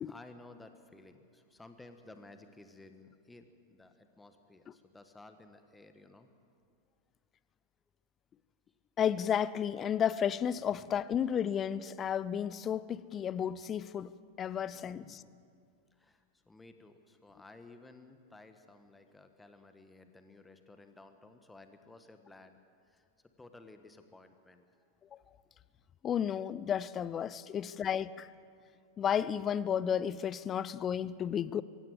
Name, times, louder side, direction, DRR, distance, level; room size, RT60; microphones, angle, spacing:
voice 1, 0.0-6.3 14.6-15.4 15.9-22.6 22.8-23.0 23.4-24.6 27.6-28.2, left 2 dB, 10° left, 1.5 m, -56 dB
voice 2, 9.0-14.1 14.4-15.2 26.0-28.1 29.0-31.6, left 8 dB, 25° left, 0.6 m, -32 dB
23.5 x 16.5 x 7.9 m
figure-of-eight pair, 90°, 0 cm